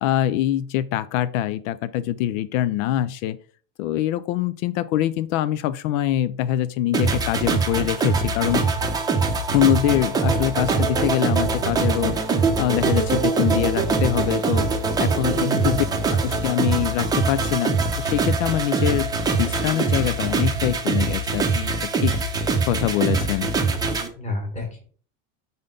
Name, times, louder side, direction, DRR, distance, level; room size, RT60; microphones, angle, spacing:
voice 1, 0.0-3.4 3.8-8.6 9.5-12.2 12.6-14.7 15.0-15.8 16.2-22.1 22.7-23.5, left 12 dB, 80° left, 15 dB, 0.5 m, -24 dB
sound 1, 6.9-24.1, right 4 dB, 10° right, 0.6 m, -23 dB
voice 2, 15.3-15.9 24.1-24.8, left 2 dB, 20° left, 3 dB, 1.8 m, -29 dB
5.4 x 3.9 x 4.9 m, 0.43 s
cardioid pair, 165°, 38 cm